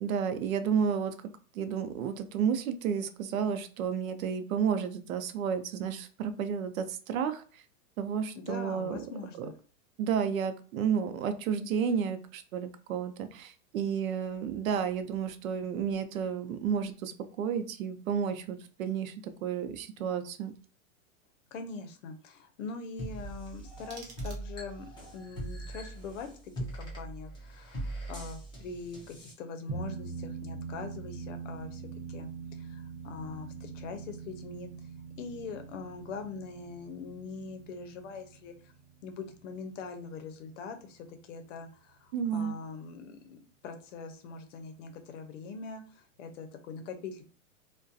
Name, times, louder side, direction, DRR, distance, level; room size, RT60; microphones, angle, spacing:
voice 1, 0.0-1.1 1.5-7.6 8.0-9.0 9.4-9.5 10.0-19.1 19.4-20.5 42.1-42.5, right 7 dB, 80° right, 9 dB, 0.6 m, -31 dB
voice 2, 8.3-9.5 21.5-26.3 26.6-31.8 32.1-34.7 35.2-38.5 39.0-47.2, left 4 dB, 65° left, 7 dB, 0.6 m, -42 dB
sound 1, 23.0-29.3, right 1 dB, 10° left, 0.6 m, -41 dB
sound 2, 23.5-24.9, right 4 dB, 30° right, 0.6 m, -52 dB
sound 3, 29.7-40.4, right 5 dB, 65° right, 1.0 m, -43 dB
2.3 x 2.2 x 2.6 m, 0.40 s
supercardioid pair, 150°, 40 cm